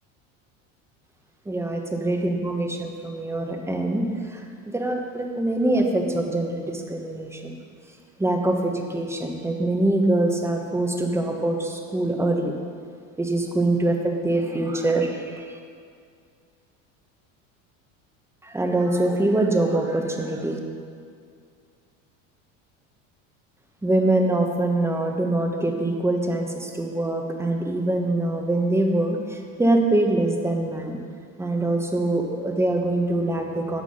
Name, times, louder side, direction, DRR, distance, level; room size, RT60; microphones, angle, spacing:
voice 1, 1.4-7.6 8.2-12.5 13.2-15.6 18.4-20.6 23.8-31.0 31.4-33.8, right 2 dB, 5° right, 2 dB, 1.3 m, -24 dB
9.7 x 6.0 x 8.1 m, 2.2 s
supercardioid pair, 105°, 39 cm